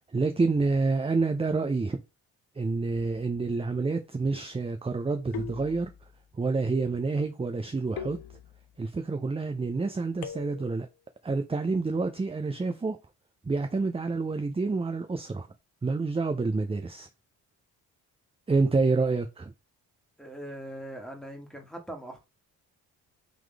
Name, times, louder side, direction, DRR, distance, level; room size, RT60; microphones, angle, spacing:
voice 1, 0.1-2.0 2.6-5.9 6.4-8.2 8.8-10.9 11.2-13.0 13.4-15.5 15.8-17.1 18.5-19.5, right 3 dB, 15° right, 0.5 m, -28 dB
sound 1, 2.9-3.5 5.3-6.3 8.0-8.9 10.2-10.9, left 9 dB, 60° left, 0.8 m, -42 dB
voice 2, 20.2-22.2, right 1 dB, ahead, 1.6 m, -41 dB
4.0 x 3.0 x 3.4 m
supercardioid pair, 50°, 42 cm